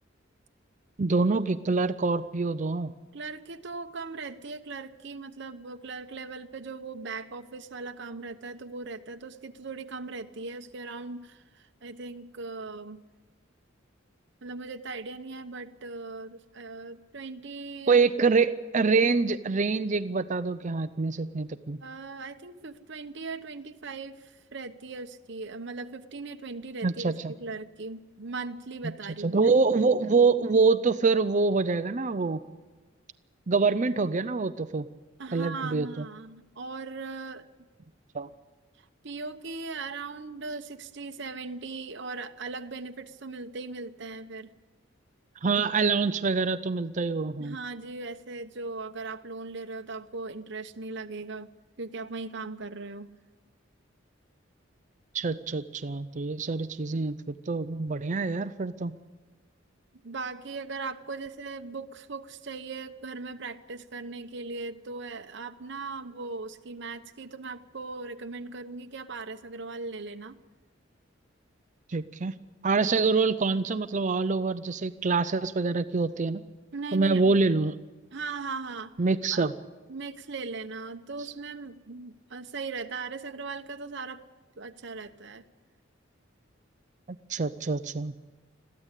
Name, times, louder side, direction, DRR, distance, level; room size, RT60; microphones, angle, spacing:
voice 1, 1.0-2.9 17.9-21.8 26.8-27.3 29.2-32.4 33.5-34.9 35.3-36.0 38.1-38.3 45.4-47.6 55.1-58.9 71.9-72.3 72.6-76.4 76.9-77.8 79.0-79.5 87.3-88.1, right 4 dB, 40° right, 11 dB, 0.6 m, -25 dB
voice 2, 3.1-13.0 14.4-18.0 21.8-29.5 35.2-37.5 39.0-44.5 47.4-51.5 51.8-53.1 60.0-70.4 76.7-77.3 78.1-78.9 79.3-79.4 79.9-84.2 84.6-85.4, right 3 dB, 65° right, 5 dB, 1.0 m, -39 dB
22.0 x 15.0 x 8.3 m, 1.2 s
head